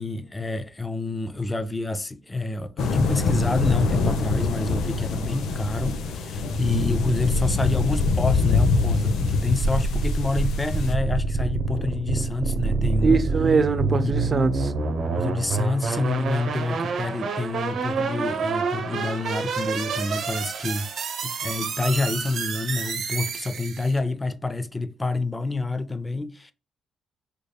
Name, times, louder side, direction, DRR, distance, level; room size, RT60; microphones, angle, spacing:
voice 1, 0.0-13.3 14.0-14.2 15.1-20.9 21.2-26.5, left 3 dB, 15° left, 0.5 m, -28 dB
sound 1, 2.8-10.9, left 3 dB, 75° left, 0.7 m, -24 dB
sound 2, 9.6-24.0, right 4 dB, 60° right, 0.9 m, -27 dB
voice 2, 13.0-14.7, right 4 dB, 35° right, 0.6 m, -22 dB
5.1 x 3.3 x 2.2 m
cardioid pair, 90°, 0 cm